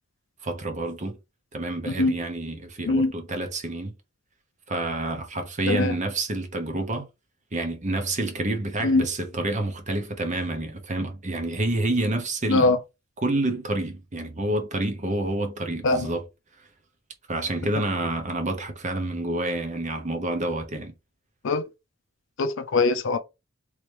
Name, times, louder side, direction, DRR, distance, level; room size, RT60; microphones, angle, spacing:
voice 1, 0.4-1.2 1.5-3.9 4.7-7.1 7.5-12.7 13.2-16.2 17.3-20.9, right 2 dB, 35° right, 1.0 m, -28 dB
voice 2, 1.9-2.2 2.9-3.1 5.7-5.9 8.8-9.1 12.5-12.8 15.8-16.1 21.4-21.7 22.4-23.2, left 3 dB, 65° left, 0.5 m, -22 dB
3.1 x 3.0 x 3.3 m
head